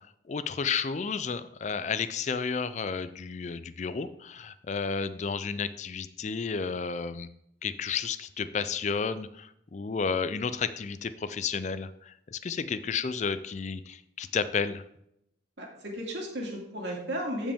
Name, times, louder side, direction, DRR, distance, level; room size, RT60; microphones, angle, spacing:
voice 1, 0.3-7.3 7.6-14.8, left 5 dB, 40° left, 14 dB, 0.4 m, -32 dB
voice 2, 15.6-17.5, equal, 70° right, -1 dB, 2.4 m, -34 dB
14.0 x 5.1 x 3.5 m, 0.78 s
head